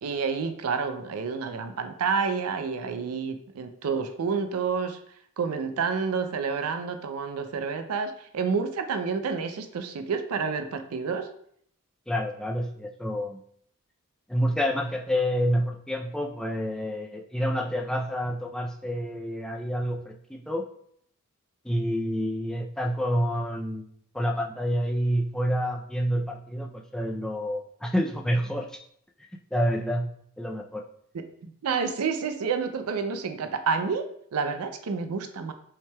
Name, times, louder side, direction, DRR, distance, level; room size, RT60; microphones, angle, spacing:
voice 1, 0.0-5.0 5.4-11.3 31.1-34.1 34.3-35.5, right 5 dB, 85° right, 8 dB, 0.5 m, -29 dB
voice 2, 12.1-13.4 14.3-20.6 21.6-23.9 24.1-28.8 29.5-30.1 30.4-30.8, equal, 5° left, 1 dB, 0.3 m, -28 dB
5.6 x 3.3 x 2.2 m, 0.66 s
head